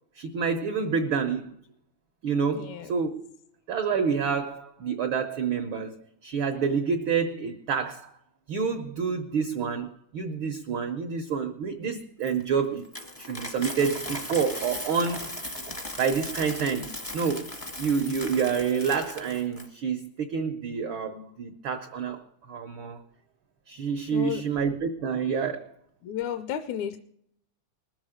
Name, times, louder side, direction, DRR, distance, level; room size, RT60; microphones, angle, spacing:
voice 1, 0.2-1.5 2.2-3.3 3.7-5.9 6.2-8.1 8.5-12.9 13.2-17.5 17.8-22.2 22.5-23.0 23.7-25.7, right 6 dB, 85° right, 5 dB, 1.1 m, -28 dB
voice 2, 2.5-2.9 24.1-24.4 26.0-27.0, left 10 dB, 75° left, 10 dB, 1.9 m, -32 dB
Coin (dropping), 12.2-19.7, left 1 dB, 35° left, 0.5 m, -38 dB
20.5 x 7.3 x 5.0 m, 0.69 s
omnidirectional pair, 3.5 m